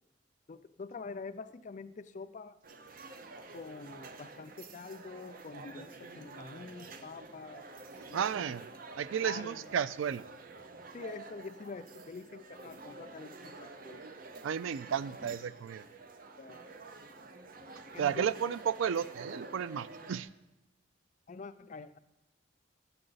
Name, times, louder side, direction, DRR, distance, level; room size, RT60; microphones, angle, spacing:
voice 1, 0.5-2.6 3.5-7.6 8.1-8.6 9.2-9.7 10.9-14.0 16.3-16.6 17.9-18.6 21.3-22.0, left 4 dB, 40° left, 12 dB, 0.4 m, -46 dB
sound 1, 2.6-20.2, right 3 dB, 45° right, 0.6 m, -49 dB
voice 2, 8.1-8.7 9.0-10.2 14.4-15.9 18.0-20.3, right 8 dB, 85° right, 17 dB, 0.3 m, -33 dB
10.5 x 7.7 x 3.9 m, 0.94 s
head